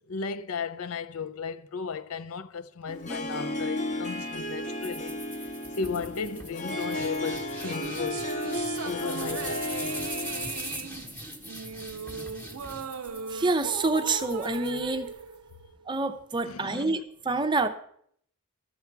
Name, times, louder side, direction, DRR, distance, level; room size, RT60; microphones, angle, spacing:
voice 1, 0.1-5.2 5.4-8.2 8.8-10.0 16.4-17.0, left 5 dB, 75° left, 0.5 m, -35 dB
Harp, 2.9-10.8, left 1 dB, 35° left, 0.8 m, -34 dB
sound 1, 4.8-15.3, equal, 10° left, 1.0 m, -41 dB
sound 2, 7.5-16.1, right 6 dB, 90° right, 0.5 m, -38 dB
voice 2, 13.3-15.1 15.9-17.7, right 3 dB, 20° right, 0.6 m, -27 dB
13.0 x 7.1 x 4.6 m
head